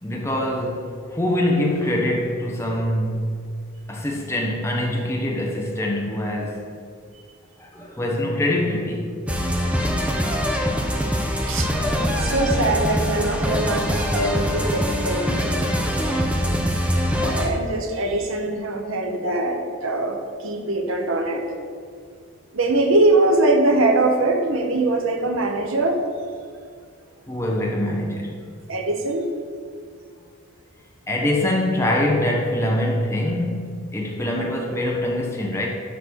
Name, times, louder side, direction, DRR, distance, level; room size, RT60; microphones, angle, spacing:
voice 1, 0.0-3.5 3.9-6.7 7.6-9.2 27.3-28.4 31.1-35.7, left 1 dB, 10° left, -1 dB, 1.1 m, -24 dB
sound 1, 9.3-17.5, equal, 5° right, 0.7 m, -23 dB
voice 2, 12.1-15.6 17.1-21.6 22.5-26.0 28.7-29.3, right 2 dB, 75° right, 4 dB, 1.0 m, -22 dB
11.5 x 4.0 x 6.3 m, 2.1 s
head